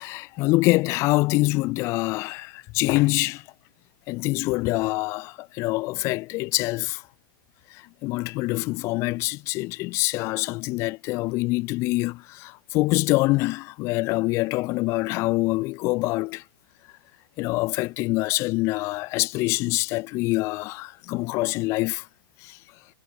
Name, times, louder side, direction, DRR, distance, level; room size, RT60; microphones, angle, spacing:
voice 1, 0.0-3.5 4.1-7.0 7.7-16.4 17.4-22.1 22.4-22.6, left 22 dB, 25° left, 0.3 m, -25 dB
hypercardioid pair, 150°, 12 cm